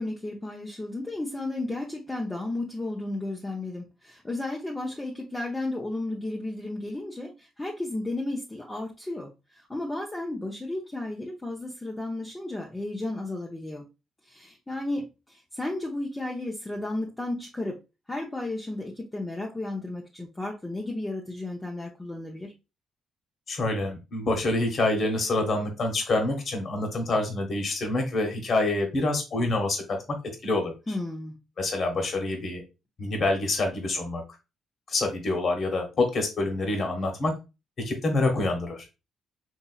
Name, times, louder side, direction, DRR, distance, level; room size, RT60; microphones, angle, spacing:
voice 1, 0.0-9.3 9.7-13.9 14.3-17.8 18.1-22.5 30.9-31.4, left 2 dB, 15° left, 0.7 m, -33 dB
voice 2, 23.5-30.0 30.4-30.7 31.6-32.6 33.0-34.2 34.9-37.3 37.8-38.8, left 2 dB, 50° left, 1.2 m, -26 dB
4.2 x 2.8 x 2.3 m
cardioid pair, 90°, 0 cm